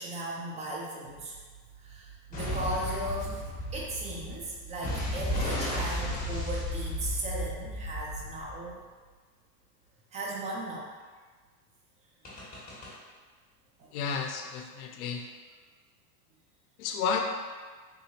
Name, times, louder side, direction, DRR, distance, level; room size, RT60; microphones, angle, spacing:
voice 1, 0.0-1.4 1.8-3.4 3.7-8.8 10.1-10.9 13.8-13.9, right 2 dB, 15° right, -2 dB, 0.4 m, -36 dB
sound 1, 2.3-8.7 12.2-12.9, left 1 dB, 15° left, 1.2 m, -34 dB
voice 2, 13.9-15.2 16.8-17.2, left 6 dB, 65° left, 3 dB, 0.6 m, -31 dB
3.6 x 2.7 x 2.9 m, 1.5 s
hypercardioid pair, 115°, 48 cm